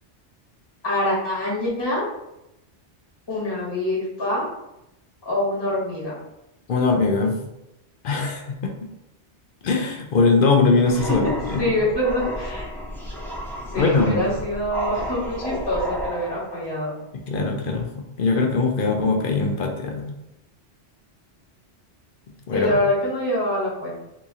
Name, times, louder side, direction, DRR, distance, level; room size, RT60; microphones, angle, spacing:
voice 1, 0.8-2.0 3.3-4.5 5.2-6.2 11.1-12.7 13.7-16.9 22.5-24.0, left 1 dB, 20° left, -7 dB, 1.2 m, -25 dB
voice 2, 6.7-7.4 8.0-8.6 9.6-11.7 13.8-14.3 17.3-20.1 22.5-22.8, left 4 dB, 60° left, 2 dB, 0.6 m, -21 dB
sound 1, 10.8-16.9, equal, 5° left, 0.3 m, -32 dB
2.9 x 2.8 x 3.6 m, 0.90 s
omnidirectional pair, 1.2 m